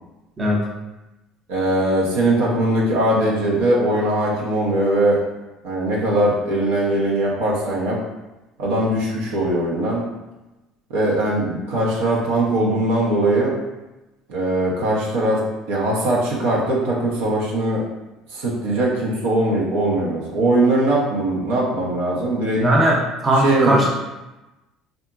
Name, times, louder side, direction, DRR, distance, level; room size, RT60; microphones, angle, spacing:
voice 1, 1.5-5.2 5.6-8.0 8.6-10.0 10.9-13.5 14.3-15.4 15.7-17.8 18.3-22.6 23.4-23.8, right 1 dB, 80° right, -4 dB, 0.7 m, -20 dB
voice 2, 22.6-23.9, right 1 dB, 30° right, -3 dB, 0.6 m, -18 dB
2.8 x 2.4 x 2.3 m, 1.0 s
supercardioid pair, 85°, 0 cm